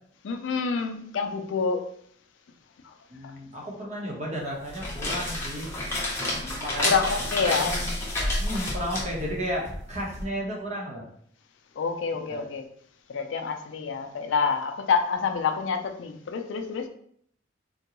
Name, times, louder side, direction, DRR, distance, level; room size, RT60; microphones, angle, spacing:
voice 1, 0.2-1.8 6.8-7.7 11.8-12.7 13.1-16.9, left 5 dB, 75° left, 6 dB, 0.4 m, -27 dB
voice 2, 3.1-5.7 6.3-7.0 7.4-7.9 8.4-11.0 12.3-12.5, equal, 35° right, -2 dB, 0.9 m, -33 dB
sound 1, 4.6-10.2, left 1 dB, 15° left, 0.8 m, -30 dB
3.7 x 2.2 x 2.9 m, 0.65 s
head